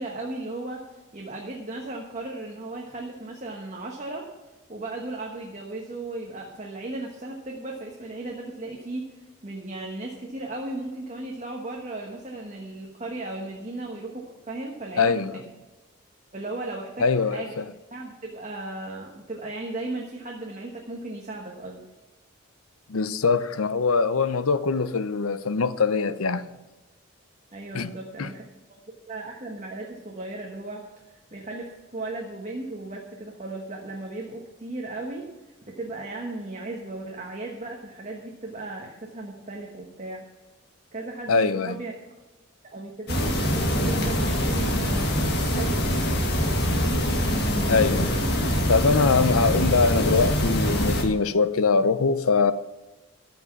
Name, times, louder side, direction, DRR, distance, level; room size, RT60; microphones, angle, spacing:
voice 1, 0.0-4.3 4.7-15.4 16.3-17.5 17.9-21.8 27.5-28.4 28.7-28.8 29.1-35.3 35.7-40.3 40.9-41.9 42.7-45.1 45.5-46.4, right 2 dB, 35° right, 1.3 m, -36 dB
voice 2, 15.0-15.3 17.0-17.6 22.9-26.4 27.7-27.9 28.2-28.3 41.3-41.8 47.7-48.1 48.7-52.5, left 4 dB, 80° left, 0.7 m, -22 dB
sound 1, 43.1-51.0, equal, 50° left, 1.8 m, -24 dB
13.5 x 6.0 x 7.1 m
head